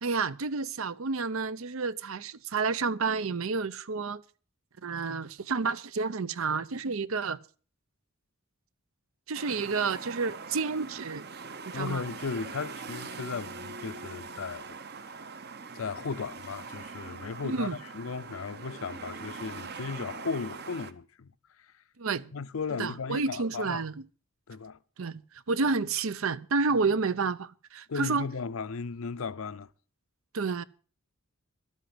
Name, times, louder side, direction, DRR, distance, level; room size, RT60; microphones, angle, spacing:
voice 1, 0.0-4.2 4.8-7.4 9.3-11.2 11.7-12.0 17.4-17.8 22.0-22.3 22.8-23.9 25.0-25.2 25.5-28.3 30.3-30.6, right 4 dB, 75° right, 0.7 m, -30 dB
sound 1, 9.3-20.9, right 5 dB, 50° right, 0.8 m, -42 dB
voice 2, 11.7-14.8 15.1-15.2 15.7-21.3 21.6-21.7 22.3-23.8 24.5-24.8 27.9-29.7, left 5 dB, 75° left, 0.6 m, -36 dB
12.5 x 8.2 x 7.8 m
head